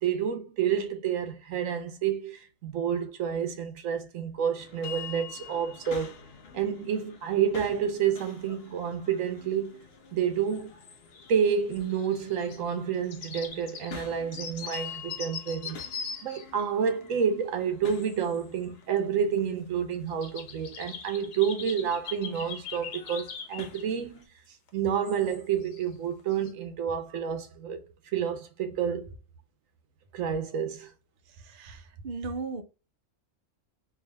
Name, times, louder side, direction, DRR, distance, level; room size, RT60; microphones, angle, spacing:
voice 1, 0.0-6.2 6.5-9.8 10.1-10.7 11.3-15.8 16.2-24.2 24.7-27.8 28.1-29.1 30.1-30.9, right 7 dB, 80° right, 1.2 m, -29 dB
sound 1, 4.6-24.3, left 6 dB, 55° left, 1.0 m, -48 dB
sound 2, 10.5-11.4 11.7-12.6 12.9-17.2 17.8-18.4 18.8-19.0 19.4-19.5 19.9-23.9 24.7-24.8 25.0-25.9 26.2-26.5, left 6 dB, 90° left, 1.2 m, -42 dB
voice 2, 31.4-32.6, right 4 dB, 50° right, 0.7 m, -36 dB
3.5 x 2.6 x 3.3 m
omnidirectional pair, 1.3 m